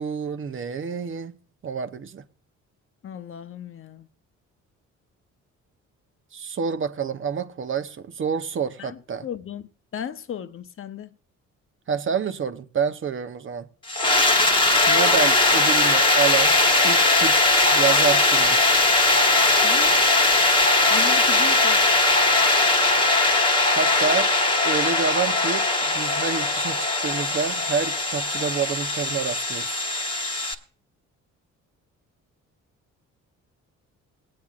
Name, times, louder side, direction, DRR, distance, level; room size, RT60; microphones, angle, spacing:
voice 1, 0.0-1.4 1.6-2.2 6.3-9.3 11.9-13.7 14.9-16.6 16.8-18.8 23.8-24.3 24.6-29.8, right 6 dB, 40° right, 0.8 m, -28 dB
voice 2, 3.0-4.1 8.8-9.7 9.9-11.1 19.6-20.0 20.9-21.8, left 8 dB, 45° left, 0.8 m, -36 dB
sound 1, 13.9-30.5, left 2 dB, 15° left, 1.2 m, -20 dB
21.0 x 8.7 x 2.4 m
cardioid pair, 90°, 30 cm